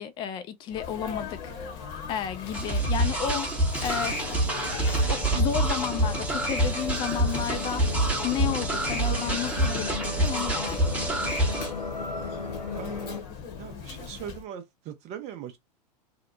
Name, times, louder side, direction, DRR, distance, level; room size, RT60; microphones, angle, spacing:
voice 1, 0.0-1.5 2.1-3.5 3.8-4.3 5.1-7.9 8.2-11.3, left 10 dB, 20° left, 0.4 m, -32 dB
Sneeze, 0.7-14.5, left 6 dB, 40° left, 0.9 m, -40 dB
sound 1, 2.5-11.7, right 1 dB, 5° right, 0.9 m, -27 dB
sound 2, 3.8-13.2, left 3 dB, 90° left, 0.4 m, -36 dB
voice 2, 12.7-15.6, right 9 dB, 35° right, 0.6 m, -40 dB
2.8 x 2.0 x 2.4 m
figure-of-eight pair, 90°, 21 cm